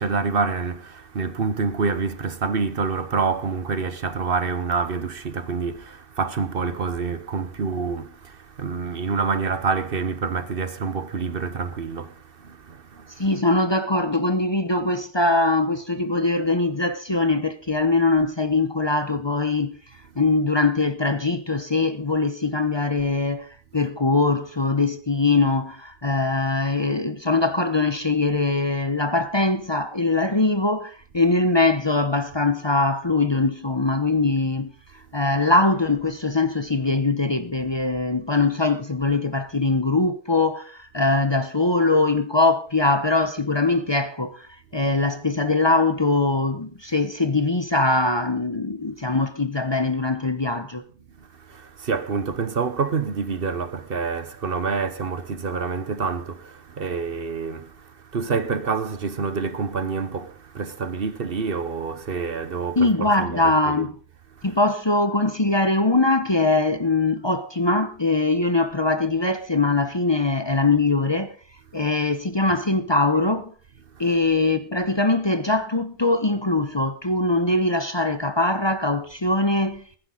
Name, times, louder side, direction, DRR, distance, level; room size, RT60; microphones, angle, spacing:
voice 1, 0.0-13.4 51.3-63.9 64.4-64.6 73.9-74.2, right 5 dB, 55° right, 1.2 m, -27 dB
voice 2, 13.2-19.8 20.2-23.5 23.7-34.7 35.1-44.5 44.7-50.8 62.8-64.0 64.4-71.3 71.7-73.5 74.0-79.8, left 3 dB, 25° left, 0.9 m, -22 dB
21.5 x 10.0 x 3.9 m
omnidirectional pair, 1.1 m